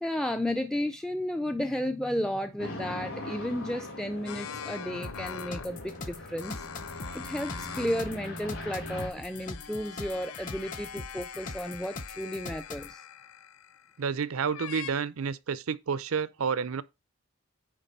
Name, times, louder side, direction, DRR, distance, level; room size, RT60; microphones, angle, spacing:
voice 1, 0.0-13.0, left 1 dB, 5° left, 0.4 m, -33 dB
sound 1, 2.6-9.1, left 1 dB, 65° left, 3.8 m, -41 dB
sound 2, 4.3-5.8 6.4-8.2 8.5-14.0 14.5-14.9, left 8 dB, 80° left, 0.6 m, -43 dB
sound 3, 5.0-12.9, left 2 dB, 40° left, 0.8 m, -42 dB
voice 2, 14.0-16.8, right 6 dB, 75° right, 0.5 m, -30 dB
9.9 x 3.4 x 5.3 m
head